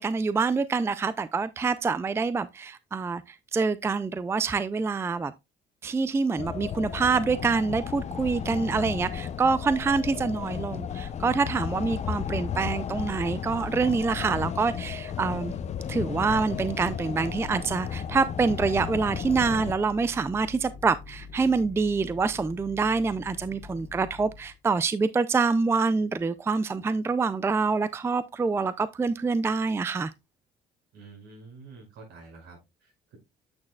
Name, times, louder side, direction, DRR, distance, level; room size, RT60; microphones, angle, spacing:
voice 1, 0.0-5.3 5.8-15.5 15.9-30.1, right 4 dB, 15° right, 0.4 m, -26 dB
sound 1, 6.4-19.7, left 8 dB, 40° left, 0.6 m, -34 dB
sound 2, 18.0-24.5, left 4 dB, 75° left, 1.4 m, -45 dB
voice 2, 30.9-33.2, right 4 dB, 75° right, 5.4 m, -48 dB
8.7 x 6.4 x 2.3 m
cardioid pair, 110°, 17 cm